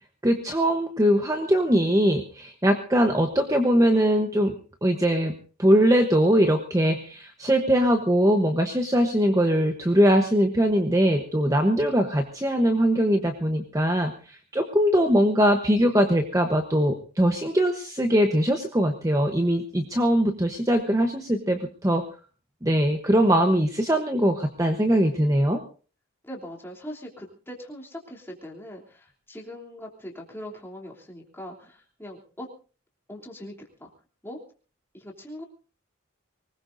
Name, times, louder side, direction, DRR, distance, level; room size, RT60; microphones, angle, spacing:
voice 1, 0.2-4.6 4.8-5.3 5.6-22.0 22.6-25.6, equal, 15° right, 4 dB, 1.0 m, -21 dB
voice 2, 26.2-32.5 33.1-33.5 33.8-33.9 34.2-34.4 34.9-35.4, equal, 10° left, -1 dB, 3.1 m, -41 dB
24.0 x 20.0 x 2.7 m, 0.38 s
head